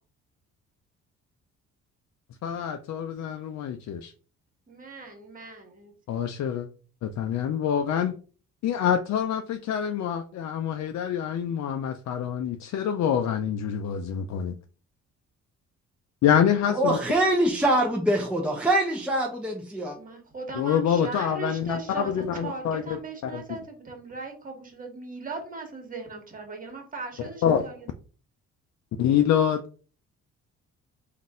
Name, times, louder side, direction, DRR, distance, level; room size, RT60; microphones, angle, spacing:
voice 1, 2.4-4.1 6.1-6.7 7.0-8.1 8.6-14.6 16.2-17.0 20.6-23.4 27.4-27.7 29.0-29.6, left 8 dB, 65° left, 6 dB, 0.5 m, -26 dB
voice 2, 4.7-6.2 19.9-27.9, right 3 dB, 25° right, 3 dB, 1.6 m, -39 dB
voice 3, 16.8-20.0, right 1 dB, 5° right, 0 dB, 0.8 m, -24 dB
3.9 x 2.6 x 3.7 m, 0.38 s
cardioid pair, 90°, 30 cm